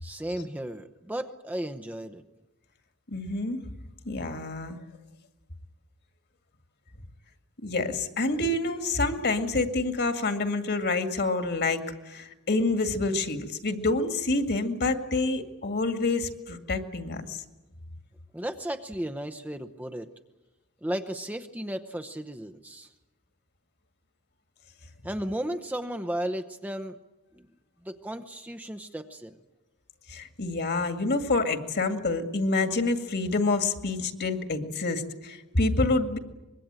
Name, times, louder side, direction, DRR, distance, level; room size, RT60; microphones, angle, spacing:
voice 1, 0.0-2.2 18.3-20.1 20.8-22.9 25.0-27.0 27.3-27.4 27.8-29.4, right 1 dB, 5° right, 7 dB, 0.8 m, -34 dB
voice 2, 3.1-3.6 4.1-4.8 7.6-17.4 30.1-36.2, left 3 dB, 50° left, 7 dB, 2.1 m, -27 dB
25.0 x 22.0 x 8.9 m, 1.1 s
head